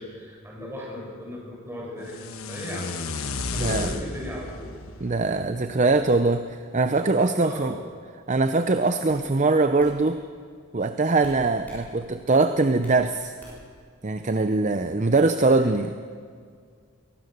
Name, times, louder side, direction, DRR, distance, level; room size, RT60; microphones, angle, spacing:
voice 1, 0.0-3.0 3.5-4.8 7.3-7.8 15.5-15.7, left 1 dB, 10° right, -4 dB, 7.2 m, -36 dB
sound 1, 2.0-6.2, left 4 dB, 75° left, 1.2 m, -33 dB
voice 2, 3.6-3.9 5.0-7.8 8.3-10.2 10.7-13.3 14.0-16.0, right 3 dB, 35° right, 8 dB, 0.6 m, -22 dB
sound 2, 8.3-8.5 9.1-9.3 9.8-10.0 11.2-11.9 12.2-13.0 13.4-13.8, equal, 10° left, 7.9 m, -46 dB
23.5 x 18.0 x 6.8 m, 2.1 s
head